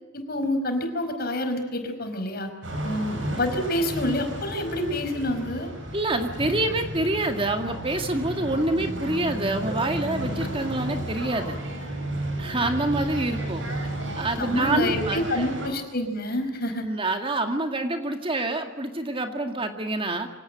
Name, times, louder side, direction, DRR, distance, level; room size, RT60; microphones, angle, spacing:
voice 1, 0.1-2.5 2.8-5.7 14.4-16.9, left 1 dB, 55° left, 6 dB, 5.0 m, -27 dB
sound 1, 2.6-15.7, right 1 dB, 75° right, 7.6 m, -33 dB
voice 2, 5.9-11.6 12.4-13.7 14.2-15.4 16.8-20.3, right 2 dB, 30° right, 5 dB, 2.2 m, -27 dB
25.0 x 17.5 x 9.0 m, 1.2 s
head